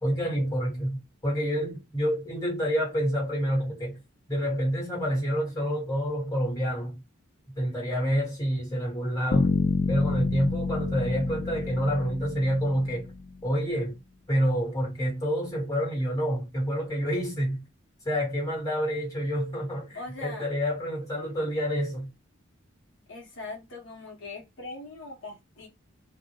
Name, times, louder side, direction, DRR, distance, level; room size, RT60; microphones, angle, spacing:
voice 1, 0.0-4.0 4.3-7.0 7.6-9.5 9.9-13.1 13.4-14.0 14.3-17.6 18.0-22.1, equal, 15° left, 1.2 m, -28 dB
Bass guitar, 9.3-13.3, left 4 dB, 45° left, 0.3 m, -28 dB
voice 2, 19.9-20.5 23.1-25.7, left 3 dB, 70° left, 0.7 m, -40 dB
2.2 x 2.1 x 2.8 m
head